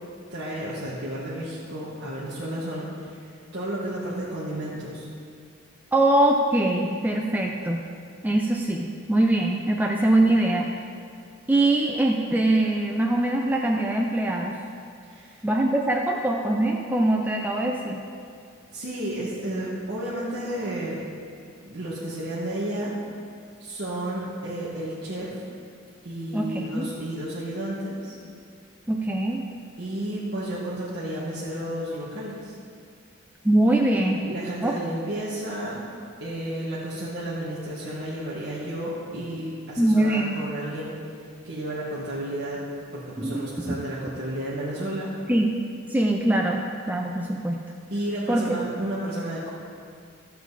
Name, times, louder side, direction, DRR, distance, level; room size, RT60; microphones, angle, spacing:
voice 1, 0.3-3.2 3.5-5.1 15.1-15.4 18.7-21.0 21.6-22.9 23.6-25.4 26.0-28.1 29.8-32.5 34.2-35.8 36.2-41.0 41.4-42.6 42.9-45.1 47.9-49.5, right 1 dB, 50° right, -8 dB, 1.6 m, -32 dB
voice 2, 5.9-7.8 8.2-10.7 11.5-14.6 15.4-18.0 26.3-26.9 28.9-29.4 33.4-34.2 34.6-34.8 39.8-40.4 43.2-43.8 45.3-45.5 45.9-47.6 48.3-48.5, right 1 dB, 10° right, 0 dB, 0.5 m, -23 dB
14.5 x 7.2 x 4.1 m, 2.3 s
head